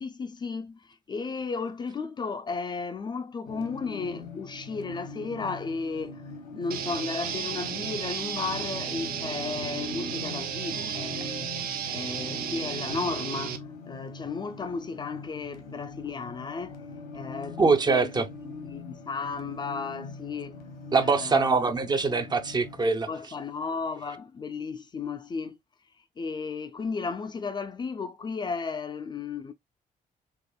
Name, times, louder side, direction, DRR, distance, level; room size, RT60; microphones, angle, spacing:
voice 1, 0.0-11.5 11.9-16.8 17.1-20.6 21.0-21.6 23.1-25.6 26.0-29.5, left 4 dB, 30° left, 0.3 m, -34 dB
sound 1, 3.5-22.9, left 3 dB, 85° left, 1.0 m, -43 dB
sound 2, 6.7-13.6, right 8 dB, 75° right, 0.6 m, -33 dB
voice 2, 17.6-18.3 20.9-23.1, right 4 dB, 30° right, 0.5 m, -23 dB
4.7 x 2.9 x 2.2 m
cardioid pair, 120°, 15 cm